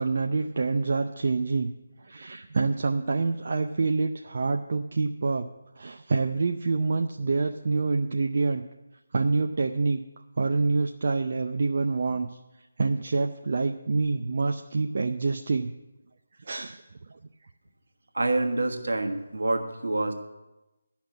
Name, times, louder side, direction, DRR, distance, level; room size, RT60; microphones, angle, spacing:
voice 1, 0.0-1.7 2.1-5.5 5.8-8.6 9.1-10.0 10.4-12.3 12.8-15.7 16.5-16.8, right 3 dB, 55° right, 4 dB, 0.6 m, -26 dB
voice 2, 18.1-20.1, right 2 dB, 75° right, 4 dB, 1.5 m, -27 dB
12.0 x 5.9 x 8.3 m, 1.0 s
figure-of-eight pair, 155°, 0 cm